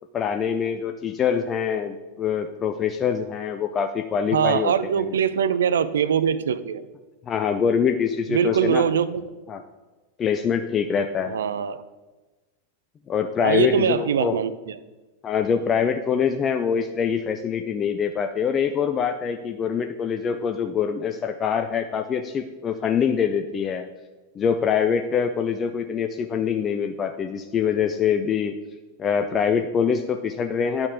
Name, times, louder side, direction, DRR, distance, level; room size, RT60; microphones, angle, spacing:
voice 1, 0.1-5.1 7.3-8.8 9.5-9.6 10.2-11.4 13.1-14.4 15.2-23.9 24.4-28.6 29.0-30.9, left 7 dB, 25° left, 7 dB, 0.4 m, -24 dB
voice 2, 4.3-6.8 8.3-9.2 11.3-11.8 13.4-14.8, right 8 dB, 65° right, 14 dB, 0.4 m, -22 dB
10.5 x 5.9 x 3.7 m, 1.2 s
figure-of-eight pair, 90°, 0 cm